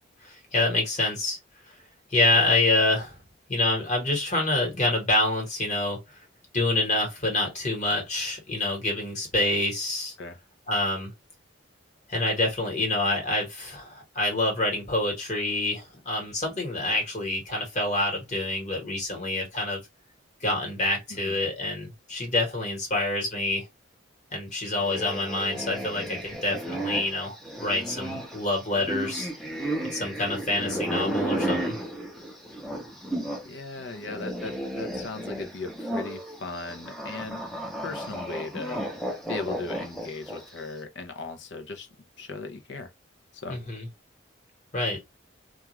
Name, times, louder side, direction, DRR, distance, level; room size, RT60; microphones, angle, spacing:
voice 1, 0.2-1.4 2.1-3.2 3.5-6.0 6.5-10.1 10.7-11.1 12.1-19.8 20.4-23.6 24.3-29.3 29.9-31.8 43.5-43.9 44.7-45.0, left 2 dB, 35° left, 1.2 m, -27 dB
sound 1, 24.8-33.5 33.8-40.6, right 1 dB, ahead, 0.5 m, -33 dB
voice 2, 33.4-37.4 37.8-38.8 39.3-41.9 42.2-42.9 43.4-43.6, left 3 dB, 60° left, 0.5 m, -37 dB
2.3 x 2.3 x 2.9 m
head